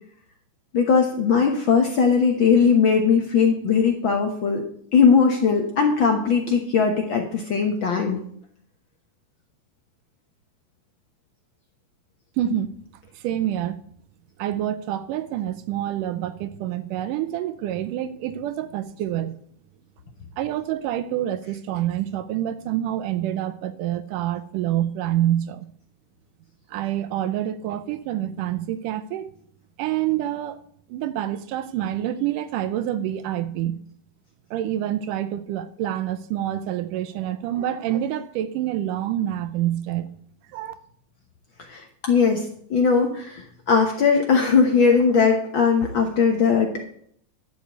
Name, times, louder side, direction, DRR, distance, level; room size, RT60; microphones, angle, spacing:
voice 1, 0.7-4.6 4.9-8.2 41.7-46.8, left 5 dB, 70° left, 1.2 m, -19 dB
voice 2, 12.4-12.8 13.2-13.8 14.4-19.4 20.4-25.7 26.7-29.3 29.8-30.6 30.9-33.8 34.5-40.1 40.5-40.7, right 12 dB, 80° right, 2.2 m, -27 dB
11.5 x 5.4 x 8.2 m
omnidirectional pair, 3.9 m